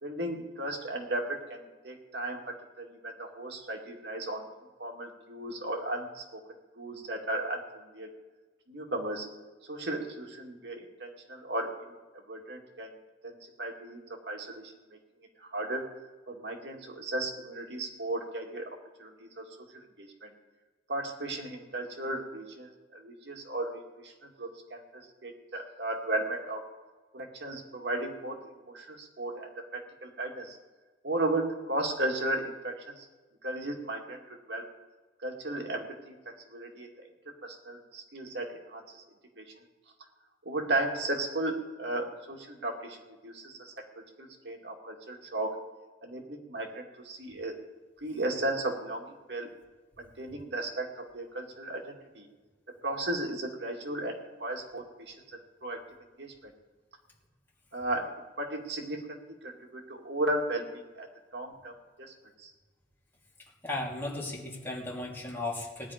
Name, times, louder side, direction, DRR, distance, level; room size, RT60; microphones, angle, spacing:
voice 1, 0.0-4.4 4.8-6.4 6.8-8.1 8.7-9.3 9.6-12.0 12.3-13.0 13.2-14.6 15.4-15.8 16.3-18.7 19.0-19.5 19.7-20.3 20.9-26.6 27.1-30.6 31.0-33.1 33.4-34.2 34.5-34.7 35.2-36.1 36.5-36.9 37.4-39.0 39.4-39.5 40.4-43.0 43.2-43.8 44.2-45.6 46.0-47.6 48.0-49.5 50.0-52.3 52.8-55.8 56.2-56.5 57.7-61.1 61.3-61.7 62.0-62.1 62.4-62.5, right 2 dB, 75° right, 1 dB, 2.3 m, -35 dB
voice 2, 63.6-65.9, left 2 dB, 15° left, -5 dB, 3.3 m, -35 dB
18.5 x 10.5 x 5.1 m, 1.3 s
head